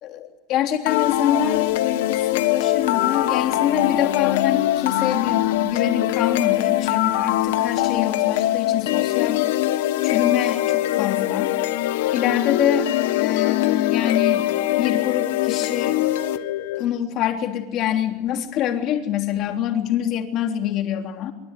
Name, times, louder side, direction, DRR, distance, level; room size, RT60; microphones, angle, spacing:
voice 1, 0.0-9.4 10.0-11.5 12.1-12.9 13.2-14.5 14.8-16.0 16.8-21.3, left 10 dB, 35° left, 4 dB, 3.4 m, -25 dB
sound 1, 0.9-16.8, left 14 dB, 80° left, 1.9 m, -22 dB
25.5 x 24.0 x 9.4 m, 1.1 s
supercardioid pair, 175°, 0 cm